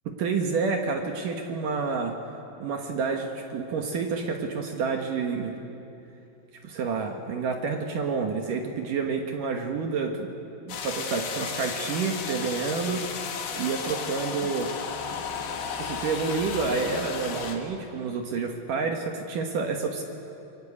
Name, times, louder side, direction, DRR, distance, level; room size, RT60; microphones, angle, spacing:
voice 1, 0.1-2.2 2.6-5.6 6.6-10.3 10.7-13.0 13.6-14.7 15.8-20.0, right 5 dB, 60° right, 3 dB, 2.3 m, -29 dB
sound 1, 10.7-17.6, left 6 dB, 60° left, 3.4 m, -34 dB
28.0 x 23.5 x 8.6 m, 2.8 s
omnidirectional pair, 5.5 m